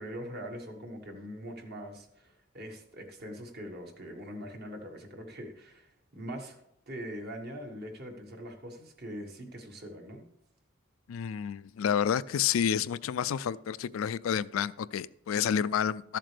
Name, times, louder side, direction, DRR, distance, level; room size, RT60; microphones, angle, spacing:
voice 1, 0.0-6.6 6.9-10.3, equal, 50° right, 3 dB, 1.5 m, -42 dB
voice 2, 11.1-16.2, left 8 dB, 90° left, 17 dB, 0.3 m, -29 dB
13.5 x 7.5 x 3.4 m, 0.80 s
head